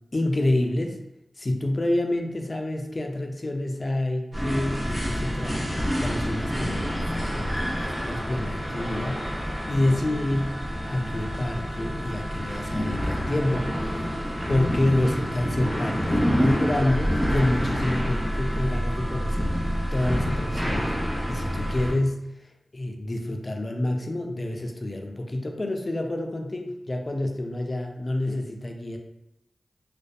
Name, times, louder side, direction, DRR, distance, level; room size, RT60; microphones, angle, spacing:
voice 1, 0.1-1.0 1.4-10.6 10.9-14.2 14.5-19.6 19.9-20.9 21.3-29.0, left 1 dB, 45° left, 3 dB, 0.4 m, -28 dB
sound 1, 4.3-21.9, equal, 15° right, 1.3 m, -28 dB
2.5 x 2.2 x 2.3 m, 0.87 s
cardioid pair, 40°, 0 cm